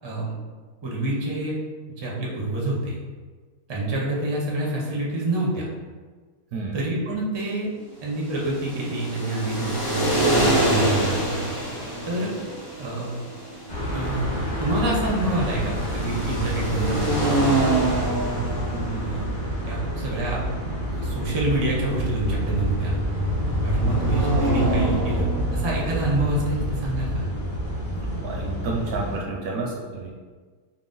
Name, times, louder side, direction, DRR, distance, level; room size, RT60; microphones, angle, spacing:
voice 1, 0.0-0.3 0.8-1.5 2.0-3.0 3.7-5.7 6.7-7.7 8.0-10.1 10.6-11.2 12.0-12.3 12.8-13.1 13.9-14.2 14.6-17.8 18.2-19.3 19.7-20.4 20.9-22.9 23.6-27.2, right 2 dB, 40° right, -4 dB, 0.4 m, -27 dB
sound 1, 8.1-26.0, right 1 dB, 50° left, 1.8 m, -27 dB
sound 2, 13.7-29.2, equal, 30° left, 0.5 m, -28 dB
voice 2, 28.2-30.1, right 3 dB, 70° right, 0 dB, 0.9 m, -30 dB
4.6 x 2.0 x 3.8 m, 1.5 s
omnidirectional pair, 1.8 m